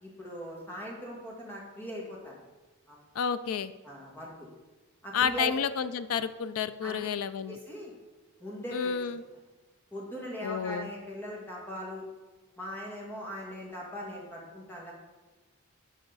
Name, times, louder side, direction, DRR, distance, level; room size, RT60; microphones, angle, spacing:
voice 1, 0.0-2.4 2.9-3.0 3.8-4.5 5.0-5.6 6.8-7.1 7.5-7.9 8.4-9.1 9.9-12.0 12.6-14.9, equal, 10° left, -3 dB, 1.9 m, -40 dB
voice 2, 3.2-3.7 5.1-7.6 8.7-9.2 10.4-10.9, left 6 dB, 70° left, 12 dB, 0.4 m, -30 dB
11.5 x 5.4 x 4.0 m, 1.2 s
head